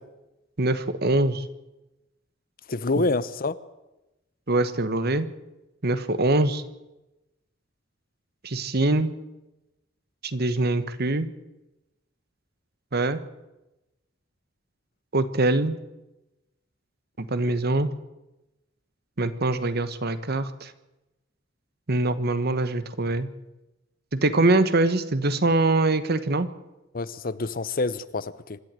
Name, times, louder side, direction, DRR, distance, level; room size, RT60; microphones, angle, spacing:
voice 1, 0.6-1.4 4.5-5.3 5.8-6.6 8.4-9.1 10.3-11.3 12.9-13.2 15.1-15.8 17.2-17.9 19.2-20.7 21.9-23.3 24.1-26.5, right 2 dB, 55° right, 1.3 m, -23 dB
voice 2, 2.7-3.6 26.9-28.6, left 3 dB, 50° left, 0.8 m, -27 dB
25.5 x 11.0 x 9.1 m
head